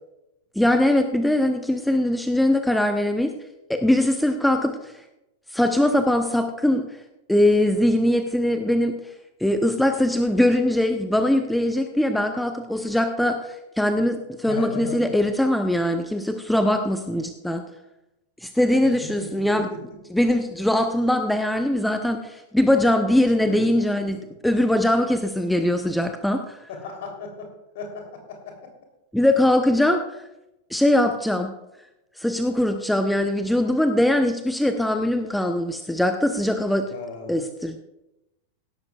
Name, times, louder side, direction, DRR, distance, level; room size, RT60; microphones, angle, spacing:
voice 1, 0.6-3.3 3.7-4.9 5.5-6.8 7.3-8.9 9.4-17.6 18.4-19.7 20.1-26.7 29.1-30.0 30.7-31.5 32.2-36.9 37.3-37.8, left 1 dB, 5° left, 6 dB, 0.8 m, -21 dB
voice 2, 14.4-15.2 18.8-18.9 19.2-19.8 23.4-24.3 26.7-27.5 27.7-28.7 36.9-37.4, left 3 dB, 55° left, 3 dB, 3.3 m, -36 dB
17.0 x 12.5 x 2.4 m, 0.91 s
figure-of-eight pair, 90°, 0 cm